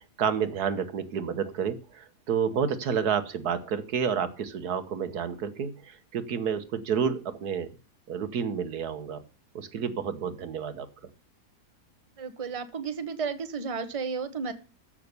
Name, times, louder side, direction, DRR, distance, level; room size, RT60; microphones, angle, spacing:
voice 1, 0.2-7.7 8.1-9.2 9.5-10.9, right 7 dB, 70° right, 12 dB, 1.6 m, -30 dB
voice 2, 12.2-14.5, right 5 dB, 25° right, 9 dB, 1.2 m, -33 dB
15.0 x 6.2 x 6.9 m, 0.35 s
omnidirectional pair, 1.7 m